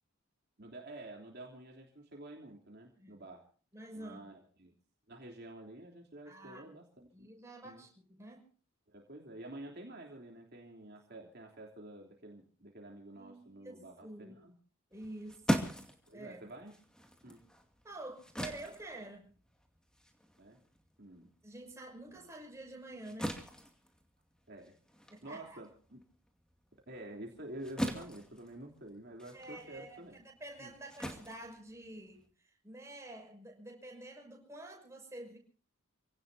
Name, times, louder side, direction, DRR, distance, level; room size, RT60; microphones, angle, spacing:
voice 1, 0.6-3.4 3.9-4.7 5.1-7.3 7.6-7.9 8.9-14.5 16.1-16.7 17.2-17.4 20.4-20.6 21.0-21.3 22.1-22.3 24.5-24.7 25.2-26.0 26.9-30.2 30.6-30.7, right 1 dB, 45° right, 0 dB, 3.4 m, -49 dB
voice 2, 3.7-4.3 6.2-6.6 7.1-8.4 13.1-14.4 14.9-15.8 16.1-16.4 17.8-19.3 21.4-23.3 25.1-25.6 29.3-35.4, right 1 dB, 15° right, 1 dB, 6.3 m, -49 dB
sound 1, 14.9-21.7 22.1-32.3, equal, 5° left, 2.3 m, -41 dB
28.5 x 18.0 x 2.8 m, 0.42 s
head